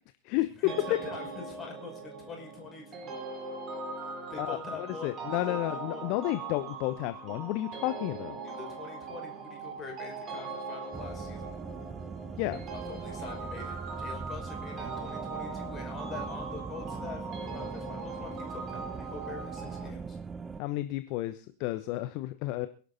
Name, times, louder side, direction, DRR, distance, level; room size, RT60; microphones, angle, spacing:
voice 1, 0.4-3.2 4.3-6.1 8.4-11.5 12.7-20.2, left 5 dB, 25° left, 2 dB, 5.7 m, -44 dB
sound 1, 0.7-19.9, right 4 dB, 30° right, 4.3 m, -40 dB
voice 2, 5.0-8.4 12.4-12.6 20.6-22.7, left 17 dB, 45° left, 11 dB, 1.0 m, -31 dB
sound 2, 10.9-20.6, right 4 dB, 15° right, 0.7 m, -41 dB
22.0 x 11.5 x 4.1 m, 0.40 s
figure-of-eight pair, 90°, 0 cm